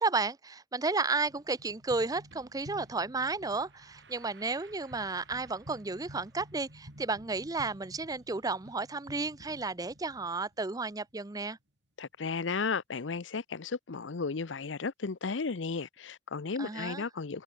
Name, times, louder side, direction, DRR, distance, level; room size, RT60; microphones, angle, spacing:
voice 1, 0.0-11.6 16.6-17.0, right 3 dB, 20° right, 0.6 m, -33 dB
sound 1, 1.2-11.6, right 1 dB, 65° right, 6.1 m, -53 dB
voice 2, 12.0-17.4, left 4 dB, 80° left, 0.7 m, -34 dB
head